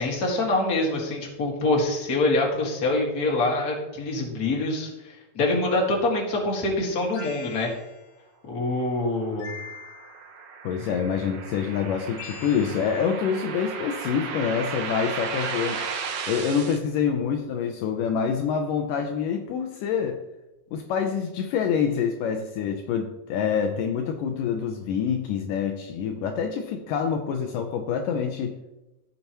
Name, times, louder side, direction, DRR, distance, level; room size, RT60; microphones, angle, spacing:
voice 1, 0.0-7.7 8.4-9.5, left 2 dB, 35° left, -1 dB, 1.7 m, -25 dB
sound 1, 7.1-8.1 9.4-10.3 12.2-13.1 15.4-15.9, left 5 dB, 70° left, 2.8 m, -43 dB
sound 2, 8.9-16.8, right 6 dB, 75° right, 1.6 m, -35 dB
voice 2, 10.6-15.9 16.3-20.2 20.7-28.6, left 7 dB, 90° left, 4 dB, 1.9 m, -26 dB
15.0 x 6.8 x 3.0 m, 0.99 s
omnidirectional pair, 4.7 m